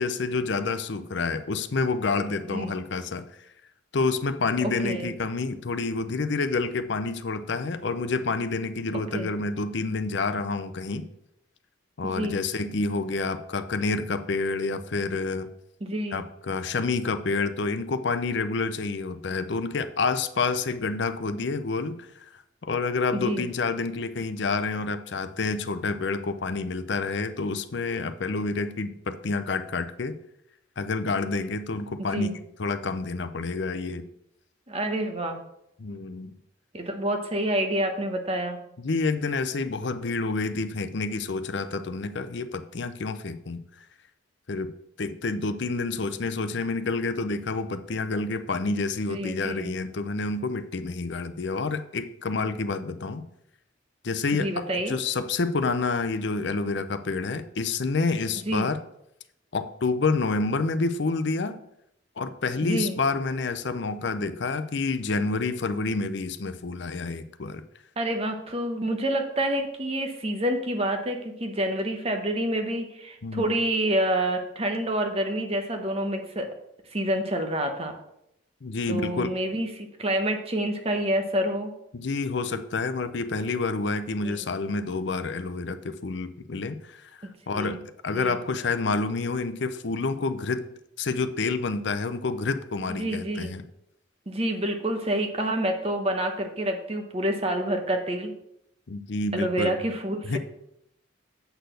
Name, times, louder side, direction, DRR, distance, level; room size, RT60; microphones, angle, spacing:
voice 1, 0.0-3.2 3.9-11.1 12.0-15.5 16.1-30.2 30.8-32.3 32.6-34.1 35.8-36.4 38.8-43.6 44.5-44.7 45.0-53.2 54.0-58.8 59.5-61.6 62.2-67.6 73.2-73.5 78.6-79.3 81.9-90.7 91.0-93.6 98.9-99.8 100.2-100.4, left 3 dB, 60° left, 11 dB, 0.6 m, -28 dB
voice 2, 12.0-12.4 15.8-16.2 23.1-23.4 32.0-32.3 34.7-35.4 36.7-38.6 49.1-49.7 54.3-54.9 58.5-58.7 62.6-63.0 68.0-76.5 76.9-77.9 78.9-81.7 84.2-84.4 87.2-87.8 88.1-88.4 93.0-93.5 94.3-98.3 99.3-100.4, right 1 dB, 30° right, 5 dB, 1.0 m, -28 dB
8.0 x 4.1 x 6.6 m, 0.79 s
head